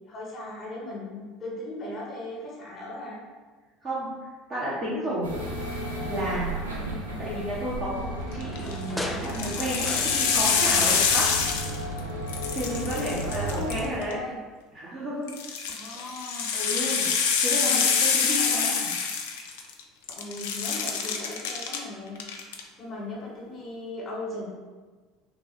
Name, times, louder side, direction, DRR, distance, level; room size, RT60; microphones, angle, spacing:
voice 1, 0.0-3.2 13.4-14.4 15.7-16.5 17.6-17.8 18.2-18.6 20.2-22.2 22.8-24.5, left 2 dB, 40° left, -5 dB, 1.0 m, -38 dB
voice 2, 4.5-5.3 6.1-6.5 7.2-11.3 12.5-14.2 14.7-15.6 16.5-17.1 17.4-18.9, equal, 40° right, -10 dB, 1.0 m, -31 dB
sound 1, 5.2-13.9, right 1 dB, 90° right, 0.5 m, -34 dB
sound 2, 8.3-10.7 11.0-12.1 12.4-12.5, left 1 dB, 5° left, 0.4 m, -38 dB
sound 3, 8.4-8.7 9.2-12.0 12.3-14.1 15.3-19.8 20.1-21.8 22.2-22.6, left 6 dB, 70° left, 0.4 m, -26 dB
3.2 x 2.4 x 3.8 m, 1.3 s
hypercardioid pair, 70°, 0 cm